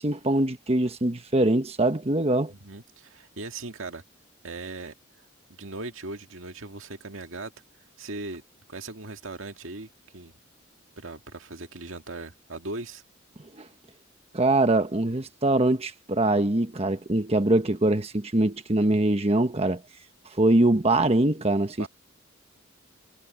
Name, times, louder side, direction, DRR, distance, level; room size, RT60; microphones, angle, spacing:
voice 1, 0.0-2.5 13.6-13.7 14.3-19.8 20.4-21.9, right 2 dB, 30° right, 1.2 m, -23 dB
voice 2, 2.5-4.0 4.4-4.9 5.5-7.5 8.0-8.4 8.7-10.3 11.0-13.0 21.8-21.9, right 2 dB, 80° right, 2.0 m, -38 dB
head